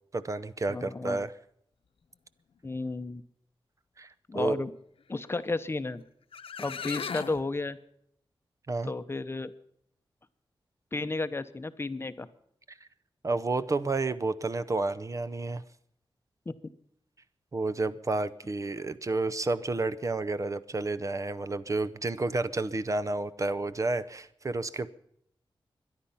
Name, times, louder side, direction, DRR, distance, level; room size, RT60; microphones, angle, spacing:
voice 1, 0.1-1.3 4.0-4.1 4.3-4.7 8.7-8.9 13.2-15.6 17.5-24.9, right 3 dB, 35° right, 12 dB, 0.6 m, -30 dB
voice 2, 0.7-1.2 2.6-3.2 4.3-4.7 5.1-6.0 6.6-7.8 8.8-9.5 10.9-12.3 16.5-16.6, left 3 dB, 25° left, 11 dB, 0.7 m, -33 dB
sound 1, 6.0-6.1 6.3-7.4, left 6 dB, 85° left, 0.9 m, -37 dB
23.5 x 10.5 x 5.6 m, 0.72 s
wide cardioid pair, 140°, 9 cm